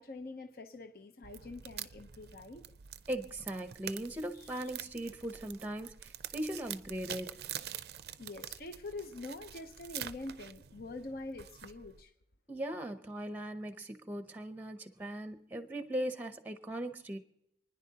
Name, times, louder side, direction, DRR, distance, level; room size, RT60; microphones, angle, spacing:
voice 1, 0.0-2.6 4.3-4.7 8.2-12.1, left 2 dB, 55° left, 0.7 m, -45 dB
sound 1, 1.2-12.0, right 10 dB, 65° right, 0.5 m, -46 dB
voice 2, 3.1-7.4 12.5-17.2, right 1 dB, 10° right, 0.7 m, -39 dB
28.5 x 10.0 x 2.8 m
head